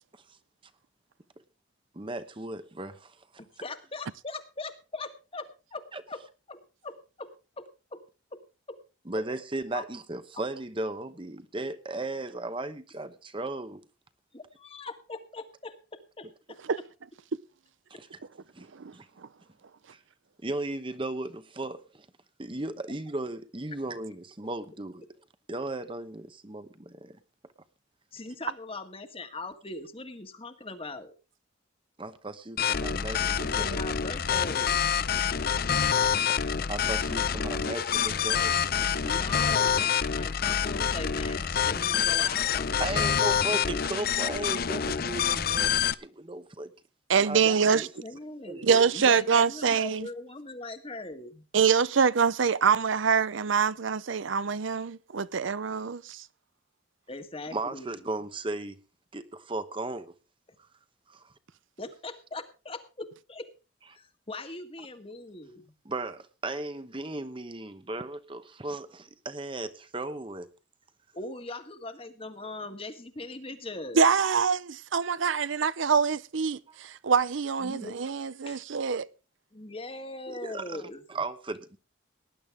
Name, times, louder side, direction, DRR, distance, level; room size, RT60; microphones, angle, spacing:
voice 1, 1.9-3.4 5.9-6.0 9.1-13.8 17.9-18.1 18.5-19.1 19.9-20.0 20.4-22.1 22.4-25.1 25.5-27.2 32.0-33.8 36.7-39.1 42.8-46.7 47.2-47.4 47.7-47.9 48.5-48.9 57.5-58.7 59.1-60.1 61.1-61.3 65.8-70.5 76.7-76.8 80.3-80.8 81.1-81.8, right 2 dB, 25° right, 1.0 m, -36 dB
voice 2, 3.4-6.2 6.5-7.3 7.6-8.0 8.3-8.4 8.7-8.8 9.7-9.8 14.3-16.6 17.9-18.0 28.1-31.1 33.6-34.9 39.0-43.7 47.4-51.4 57.1-58.0 61.8-63.5 63.9-65.6 71.1-74.0 77.6-78.0 78.4-78.6 79.5-81.0, left 2 dB, 30° left, 1.7 m, -40 dB
sound 1, 32.6-45.9, left 8 dB, 50° left, 0.6 m, -27 dB
voice 3, 47.1-47.9 48.6-50.1 51.5-56.2 73.9-79.1, right 6 dB, 75° right, 0.6 m, -25 dB
19.0 x 11.0 x 3.6 m
head